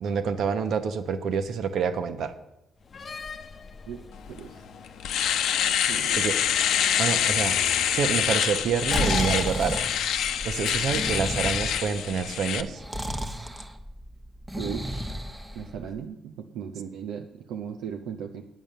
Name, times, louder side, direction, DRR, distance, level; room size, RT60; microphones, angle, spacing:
voice 1, 0.0-2.3 6.2-6.4 7.0-7.6 7.9-9.8 10.4-12.8, right 6 dB, 70° right, 9 dB, 1.1 m, -27 dB
Slam, 2.8-11.2, left 4 dB, 40° left, 0.8 m, -40 dB
voice 2, 3.9-4.6 5.9-6.3 14.6-15.2 15.5-18.4, right 8 dB, 85° right, 5 dB, 0.7 m, -37 dB
Domestic sounds home sounds, 4.4-4.5 4.9-12.6, left 9 dB, 80° left, 0.7 m, -26 dB
Breathing, 8.6-16.0, equal, 15° right, 1.1 m, -33 dB
9.2 x 8.8 x 6.7 m, 0.89 s
cardioid pair, 90°, 0 cm